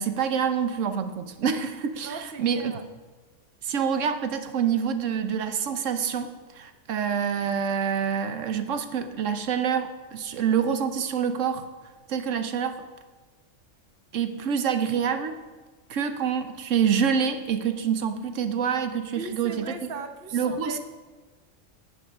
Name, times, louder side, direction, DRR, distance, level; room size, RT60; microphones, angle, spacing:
voice 1, 0.0-2.8 3.6-6.3 6.5-11.6 12.1-12.8 14.1-15.4 15.9-19.7 20.3-20.8, right 7 dB, 85° right, 1.1 m, -26 dB
voice 2, 2.0-2.9 19.1-20.8, right 4 dB, 50° right, 1.1 m, -38 dB
17.5 x 11.0 x 3.6 m
omnidirectional pair, 1.3 m